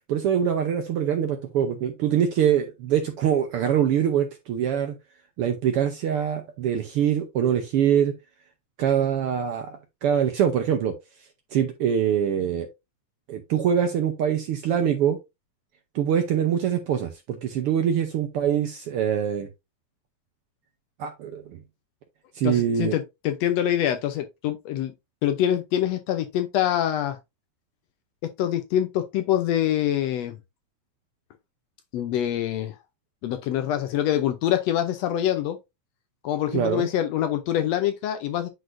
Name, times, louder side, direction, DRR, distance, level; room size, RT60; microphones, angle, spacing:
voice 1, 0.1-5.0 5.4-8.1 8.8-9.7 10.0-11.0 11.5-12.7 13.3-15.2 15.9-19.5 21.0-21.6 22.3-22.9 36.5-36.9, right 9 dB, 70° right, 1.4 m, -24 dB
voice 2, 22.4-24.9 25.2-27.2 28.2-30.4 31.9-32.8 33.2-35.6 36.2-38.5, left 11 dB, 75° left, 1.7 m, -25 dB
9.4 x 4.1 x 2.6 m
omnidirectional pair, 3.3 m